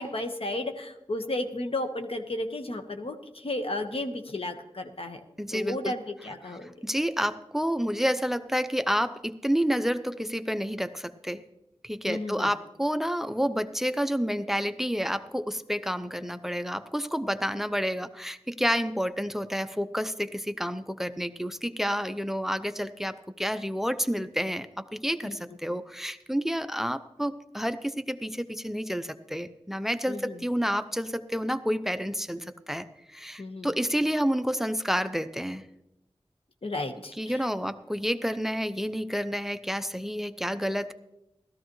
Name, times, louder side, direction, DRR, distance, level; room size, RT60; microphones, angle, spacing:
voice 1, 0.0-5.2 5.5-6.7 12.1-12.5 25.2-25.3 30.1-30.4 33.4-33.7 36.6-37.5, left 2 dB, 65° left, 6 dB, 1.3 m, -33 dB
voice 2, 5.4-6.0 6.4-11.4 11.8-35.6 37.2-40.9, equal, 5° right, 12 dB, 0.6 m, -29 dB
16.5 x 13.5 x 3.1 m, 0.87 s
wide cardioid pair, 55°, 10 cm